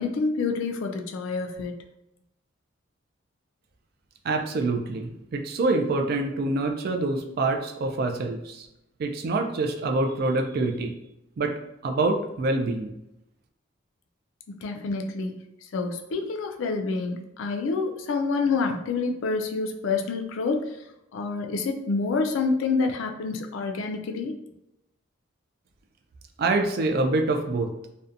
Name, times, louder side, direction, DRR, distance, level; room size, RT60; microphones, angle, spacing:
voice 1, 0.0-1.8 14.6-15.4 15.7-20.8 21.1-24.4, left 4 dB, 70° left, 4 dB, 0.3 m, -27 dB
voice 2, 4.2-8.7 9.0-10.9 11.4-11.5 11.8-12.9 26.4-27.7, right 2 dB, 50° right, 3 dB, 0.3 m, -26 dB
2.7 x 2.1 x 2.4 m, 0.86 s
head